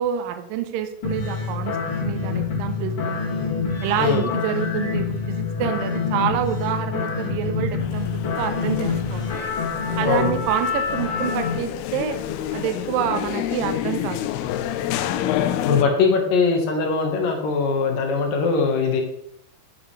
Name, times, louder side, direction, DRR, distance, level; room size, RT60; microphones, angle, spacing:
voice 1, 0.0-1.8 2.1-3.2 3.8-8.1 8.4-9.3 10.0-12.2 12.5-14.2, right 9 dB, 90° right, 7 dB, 2.0 m, -27 dB
sound 1, 1.0-11.6, left 5 dB, 40° left, 2.2 m, -26 dB
sound 2, 7.8-15.8, left 11 dB, 85° left, 2.2 m, -29 dB
voice 2, 10.0-10.4 15.6-19.0, left 4 dB, 65° left, 3 dB, 2.6 m, -21 dB
11.5 x 7.2 x 3.2 m, 0.73 s
omnidirectional pair, 5.0 m